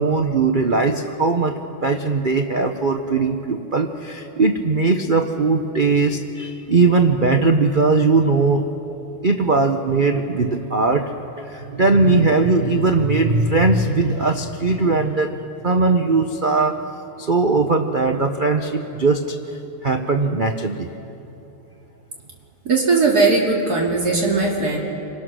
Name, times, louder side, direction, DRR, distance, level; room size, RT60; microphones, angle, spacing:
voice 1, 0.0-8.7 9.2-11.1 11.4-16.9 17.2-19.4 19.8-20.9, right 3 dB, 80° right, 5 dB, 0.4 m, -19 dB
voice 2, 22.6-24.8, right 3 dB, 45° right, -1 dB, 3.1 m, -18 dB
27.5 x 21.5 x 6.3 m, 3.0 s
omnidirectional pair, 2.4 m